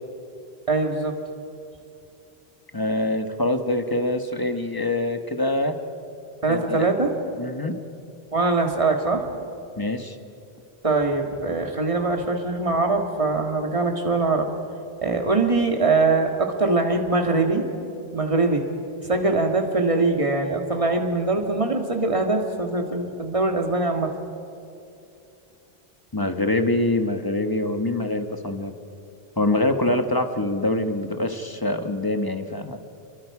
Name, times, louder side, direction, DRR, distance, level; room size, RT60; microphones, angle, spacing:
voice 1, 0.7-1.1 6.4-7.1 8.3-9.3 10.8-14.5 15.0-17.6 18.1-18.6 19.0-24.1, right 3 dB, 30° right, 3 dB, 1.9 m, -22 dB
voice 2, 2.7-5.8 6.5-6.9 7.4-7.8 9.8-10.2 26.1-28.7 29.4-32.8, left 1 dB, 20° left, 7 dB, 1.2 m, -24 dB
29.5 x 23.0 x 4.9 m, 2.6 s
omnidirectional pair, 1.1 m